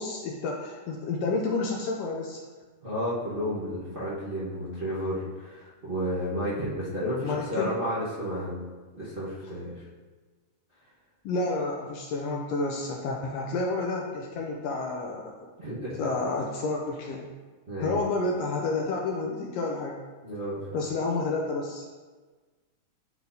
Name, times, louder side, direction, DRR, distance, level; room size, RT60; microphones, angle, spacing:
voice 1, 0.0-2.4 7.2-7.8 11.2-15.5 16.0-17.3 17.8-20.0 20.7-22.0, left 3 dB, 80° left, 0 dB, 1.4 m, -30 dB
voice 2, 2.8-8.6 8.9-9.8 15.6-16.1 17.7-17.9 20.2-20.8, equal, 60° right, -11 dB, 0.5 m, -32 dB
10.0 x 4.2 x 2.7 m, 1.4 s
omnidirectional pair, 3.4 m